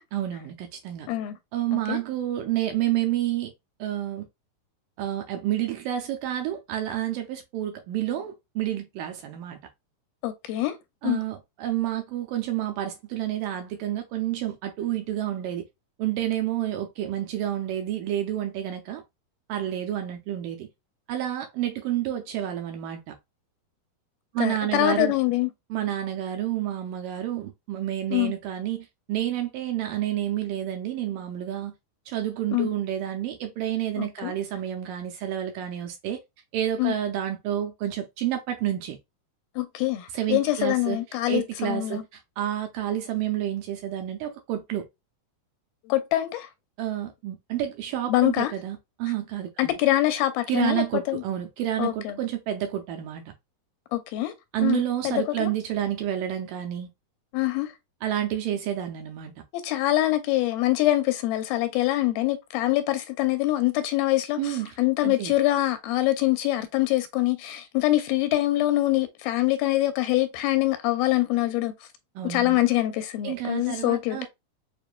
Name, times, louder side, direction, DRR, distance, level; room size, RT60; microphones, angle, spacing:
voice 1, 0.1-1.1 1.5-3.5 3.8-4.3 5.0-9.6 11.0-15.6 16.0-19.0 19.5-20.7 21.1-23.2 24.3-25.1 25.7-31.7 32.1-36.2 36.5-39.0 40.1-41.0 41.3-44.9 46.8-49.7 50.5-53.2 54.5-56.9 58.0-59.3 64.4-64.8 65.0-65.3 72.2-72.6 73.2-74.3, right 12 dB, 80° right, 2.0 m, -29 dB
voice 2, 10.2-10.8 11.0-11.2 24.4-25.5 28.1-28.3 32.5-32.7 34.0-34.3 36.8-36.9 39.6-42.0 45.9-46.5 48.1-48.5 49.6-51.2 51.8-52.2 53.9-54.3 54.6-55.5 57.3-57.7 59.5-71.7 72.2-74.3, left 16 dB, 85° left, 2.4 m, -24 dB
6.7 x 2.5 x 2.2 m
omnidirectional pair, 4.3 m